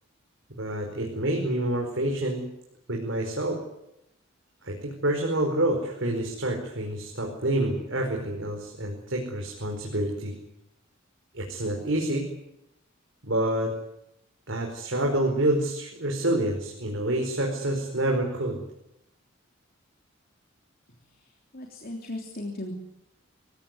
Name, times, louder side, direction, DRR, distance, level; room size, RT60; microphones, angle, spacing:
voice 1, 0.6-2.5 2.9-3.6 4.6-10.4 11.3-12.3 13.2-13.8 14.5-18.6, right 1 dB, 65° right, 1 dB, 4.8 m, -27 dB
voice 2, 21.5-22.7, left 1 dB, 45° left, 3 dB, 3.3 m, -36 dB
26.5 x 16.5 x 9.6 m, 0.82 s
head